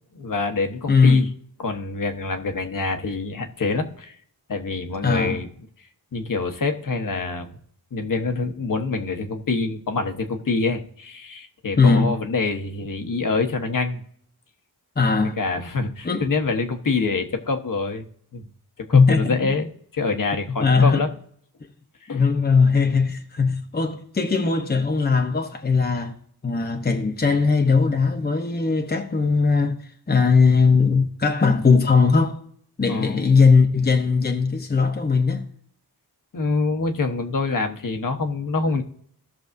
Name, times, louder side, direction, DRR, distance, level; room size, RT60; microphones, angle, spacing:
voice 1, 0.1-1.3 1.6-4.1 4.5-5.5 6.1-7.5 7.9-14.0 15.4-18.0 18.3-18.5 18.8-21.1 22.0-22.2 32.9-33.3 36.3-38.8, left 3 dB, 55° left, 1.1 m, -26 dB
voice 2, 0.9-1.2 5.0-5.4 11.8-12.1 15.0-15.4 16.0-16.2 18.9-19.4 20.6-21.0 22.1-26.1 26.4-29.8 30.1-32.4 32.8-35.4, left 4 dB, 25° left, 0.9 m, -19 dB
16.5 x 6.3 x 2.6 m
wide cardioid pair, 115°, 39 cm